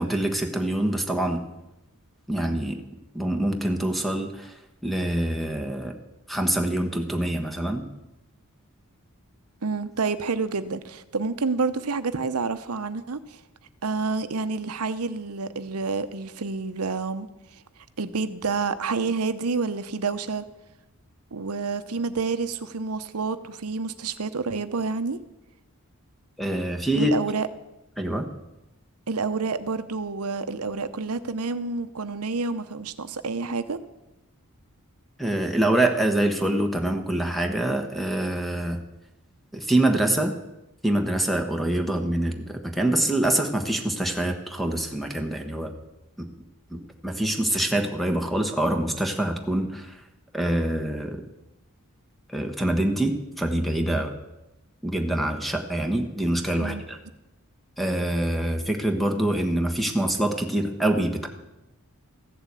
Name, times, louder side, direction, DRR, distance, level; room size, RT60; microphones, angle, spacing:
voice 1, 0.0-1.4 2.3-2.8 3.1-6.0 6.3-7.8 26.4-27.1 28.0-28.3 35.2-38.8 39.5-40.3 40.8-45.7 46.2-46.3 46.7-50.0 50.3-51.2 52.3-54.1 54.8-57.0 57.8-61.3, right 1 dB, ahead, 1.2 m, -25 dB
voice 2, 9.6-13.4 13.8-17.3 18.0-20.5 21.3-25.2 26.9-27.5 29.1-33.8 56.6-56.8, right 4 dB, 80° right, 0.9 m, -28 dB
15.0 x 7.4 x 8.4 m
head